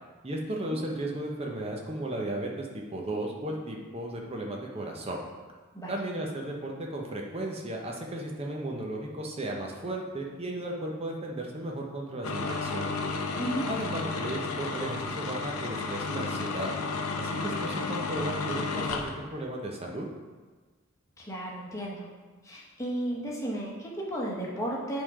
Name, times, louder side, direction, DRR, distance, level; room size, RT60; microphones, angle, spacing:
voice 1, 0.2-5.2 5.9-12.9 13.7-16.7 17.2-20.1, right 1 dB, 25° right, 0 dB, 0.8 m, -35 dB
sound 1, 12.2-19.2, left 3 dB, 75° left, 0.7 m, -32 dB
voice 2, 13.4-13.7 21.2-22.1 22.4-25.0, right 1 dB, 15° left, -4 dB, 1.2 m, -33 dB
8.0 x 3.7 x 4.9 m, 1.3 s
head